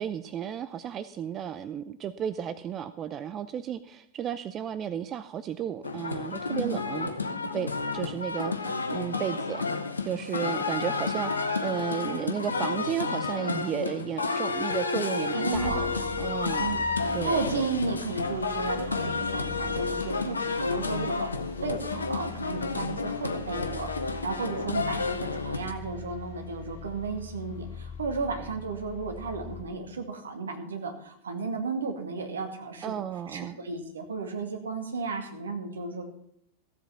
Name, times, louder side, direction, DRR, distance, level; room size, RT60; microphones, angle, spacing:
voice 1, 0.0-7.1 7.5-9.6 10.0-15.7 16.2-16.8 17.1-17.5 32.8-33.6, right 9 dB, 30° right, 13 dB, 0.5 m, -33 dB
sound 1, 5.8-25.7, left 4 dB, 75° left, 1.1 m, -31 dB
voice 2, 6.5-6.8 15.3-16.2 16.6-16.8 17.2-21.3 21.6-36.1, right 3 dB, 70° right, 5 dB, 2.1 m, -33 dB
sound 2, 15.5-29.6, left 4 dB, 55° left, 2.8 m, -43 dB
15.0 x 8.0 x 5.7 m, 0.73 s
figure-of-eight pair, 90°, 0 cm